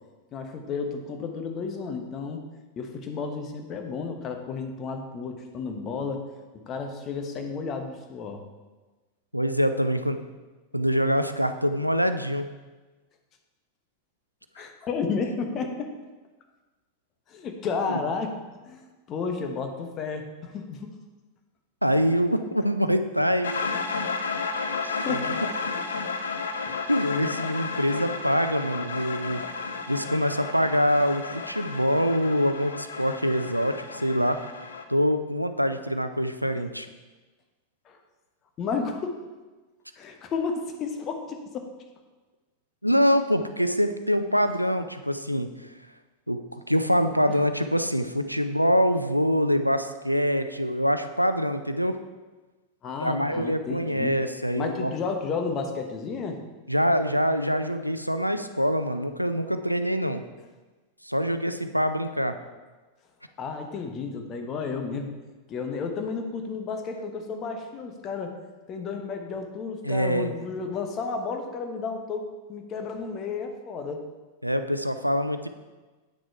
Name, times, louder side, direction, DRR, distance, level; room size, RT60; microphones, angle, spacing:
voice 1, 0.3-2.4 2.8-6.2 6.6-8.4 14.5-15.9 17.3-18.3 18.6-21.0 24.8-25.4 26.7-26.8 27.9-28.0 29.3-29.4 36.5-36.6 37.8-38.0 38.6-39.2 40.0-41.7 47.3-47.4 52.8-54.2 54.6-56.4 63.4-65.1 65.5-68.3 68.7-72.2 72.5-74.0, left 5 dB, 30° left, 4 dB, 1.1 m, -32 dB
voice 2, 9.3-10.2 10.7-12.5 21.8-23.5 24.8-25.5 26.7-29.4 29.9-34.4 34.9-36.9 42.8-45.7 46.3-52.0 53.0-54.9 56.7-60.2 61.0-62.4 69.8-70.3 74.4-75.5, equal, 90° right, 9 dB, 0.4 m, -25 dB
sound 1, 23.4-34.8, left 4 dB, 70° left, 0.6 m, -32 dB
8.6 x 6.3 x 4.6 m, 1.2 s
figure-of-eight pair, 90°, 0 cm